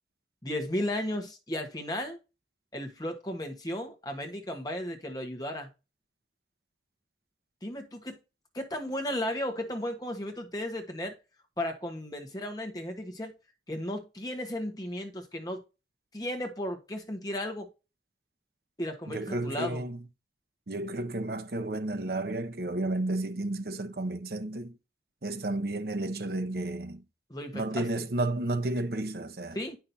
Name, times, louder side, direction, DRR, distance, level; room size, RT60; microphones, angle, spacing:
voice 1, 0.4-2.2 2.7-5.7 7.6-8.2 8.5-11.1 11.6-13.3 13.7-15.6 16.1-17.7 18.8-19.9 27.3-27.9 29.5-29.8, left 1 dB, 20° left, 1.4 m, -34 dB
voice 2, 19.1-20.0 20.7-24.7 25.2-27.0 27.5-29.6, right 2 dB, 60° right, 0.8 m, -32 dB
8.6 x 5.8 x 2.8 m
head